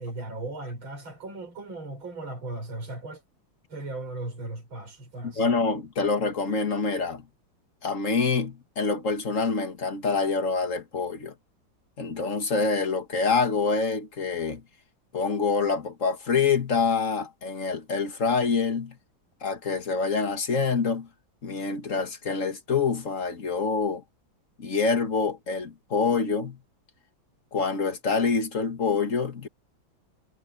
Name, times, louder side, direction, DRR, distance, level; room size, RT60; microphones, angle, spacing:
voice 1, 0.0-3.2 3.7-5.6, right 2 dB, 85° right, 6.5 m, -37 dB
voice 2, 5.2-7.3 7.8-11.3 12.0-14.6 15.1-19.0 19.4-21.1 21.4-24.0 24.6-26.6 27.5-29.5, left 4 dB, 40° left, 2.2 m, -26 dB
omnidirectional pair, 2.1 m